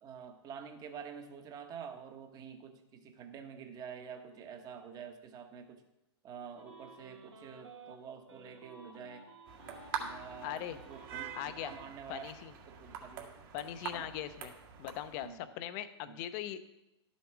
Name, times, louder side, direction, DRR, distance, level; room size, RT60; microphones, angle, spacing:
voice 1, 0.0-5.8 6.2-9.2 10.0-11.3 11.6-12.3 12.7-13.3 13.9-14.1 15.2-15.4 16.0-16.2, right 7 dB, 25° right, 6 dB, 1.3 m, -48 dB
sound 1, 6.6-7.9 8.3-11.9, right 2 dB, 80° right, 2.1 m, -53 dB
sound 2, 9.5-15.3, right 7 dB, 50° right, 1.9 m, -45 dB
voice 2, 10.4-10.8 11.3-11.7 12.1-12.6 13.5-14.5 14.8-16.6, left 11 dB, 40° left, 11 dB, 0.8 m, -40 dB
12.0 x 7.1 x 4.7 m, 0.89 s
hypercardioid pair, 120°, 15 cm